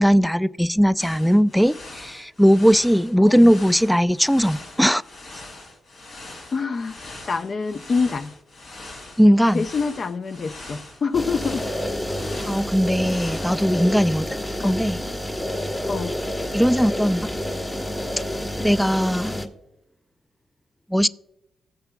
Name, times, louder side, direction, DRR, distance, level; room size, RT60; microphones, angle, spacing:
voice 1, 0.0-5.0 9.2-9.7 12.5-14.3 14.6-15.0 16.5-17.3 18.6-19.3 20.9-21.1, equal, ahead, 0.3 m, -18 dB
sound 1, 1.0-13.9, left 2 dB, 75° left, 3.0 m, -42 dB
voice 2, 6.5-8.3 9.5-11.7 14.6-14.7 15.9-16.1, left 5 dB, 50° left, 0.6 m, -26 dB
sound 2, 11.1-19.5, left 1 dB, 20° left, 1.2 m, -29 dB
17.0 x 6.9 x 2.3 m
supercardioid pair, 60°, 0 cm